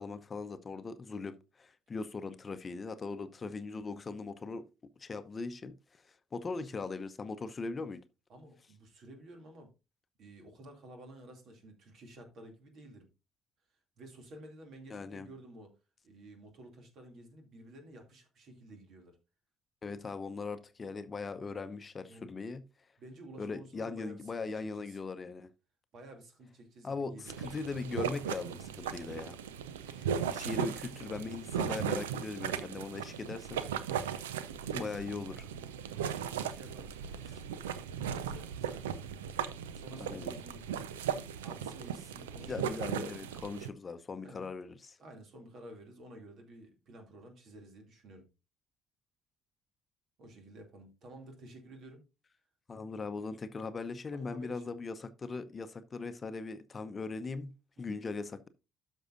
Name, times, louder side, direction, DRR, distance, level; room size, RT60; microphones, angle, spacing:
voice 1, 0.0-4.6 5.0-5.7 6.3-8.0 14.9-15.3 19.8-22.6 23.4-25.5 26.8-29.4 29.9-33.6 34.7-35.5 37.3-37.4 40.0-40.3 42.4-45.0 52.7-58.5, left 4 dB, 35° left, 0.7 m, -40 dB
voice 2, 8.3-9.7 10.2-13.1 14.0-15.7 16.0-19.2 22.1-22.3 23.0-25.0 25.9-27.6 35.9-39.0 39.7-41.1 41.4-42.7 44.2-44.5 45.0-48.3 50.2-52.0 54.1-54.7 57.8-58.0, right 1 dB, 60° right, 2.4 m, -52 dB
sound 1, 27.3-43.7, right 8 dB, 80° right, 0.5 m, -37 dB
12.5 x 5.5 x 2.5 m
hypercardioid pair, 50°, 0 cm